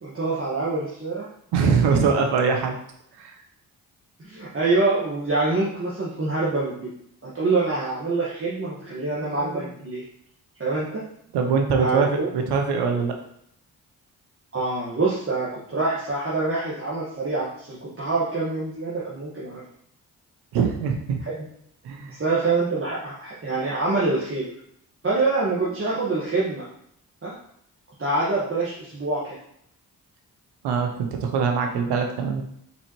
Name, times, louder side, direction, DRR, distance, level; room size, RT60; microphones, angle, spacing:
voice 1, 0.0-1.3 4.2-6.9 7.2-10.0 10.6-11.0 11.8-12.3 14.5-19.6 21.3-21.5 22.1-24.5 25.0-26.7 27.2-27.4 28.0-29.4, right 3 dB, 35° right, -7 dB, 1.4 m, -25 dB
voice 2, 1.5-2.7 3.2-3.3 11.3-13.1 20.5-21.2 21.8-22.2 30.6-32.4, right 5 dB, 80° right, 4 dB, 0.8 m, -22 dB
4.1 x 4.0 x 3.0 m, 0.72 s
supercardioid pair, 40°, 39 cm